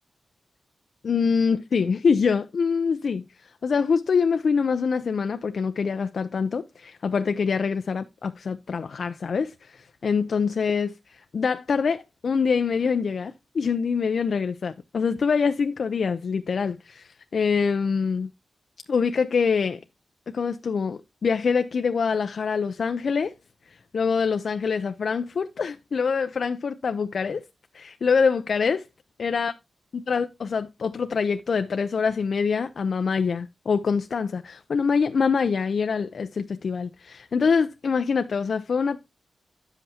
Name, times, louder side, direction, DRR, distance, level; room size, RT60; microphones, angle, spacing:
voice 1, 1.0-18.3 18.9-19.8 20.3-23.3 23.7-27.4 27.7-28.9 29.2-29.5 30.1-39.0, left 5 dB, 65° left, 0.6 m, -25 dB
10.5 x 7.9 x 2.8 m
wide cardioid pair, 100°, 0 cm